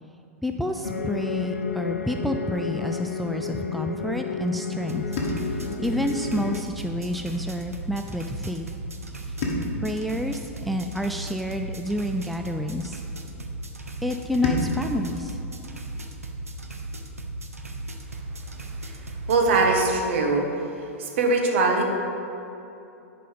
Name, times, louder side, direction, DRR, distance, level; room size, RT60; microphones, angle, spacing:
voice 1, 0.4-5.1 5.8-8.7 9.8-13.0 14.0-15.4, left 1 dB, ahead, 4 dB, 0.3 m, -29 dB
sound 1, 0.8-6.6, left 5 dB, 75° left, 0.5 m, -31 dB
sound 2, 4.9-19.9, right 2 dB, 80° right, 0.8 m, -36 dB
sound 3, 5.2-7.5 9.4-11.9 14.4-17.0, left 1 dB, 40° left, 1.6 m, -35 dB
voice 2, 19.3-20.5 21.0-21.9, right 3 dB, 55° right, 1 dB, 1.4 m, -21 dB
9.9 x 5.2 x 5.2 m, 2.8 s
figure-of-eight pair, 95°, 8 cm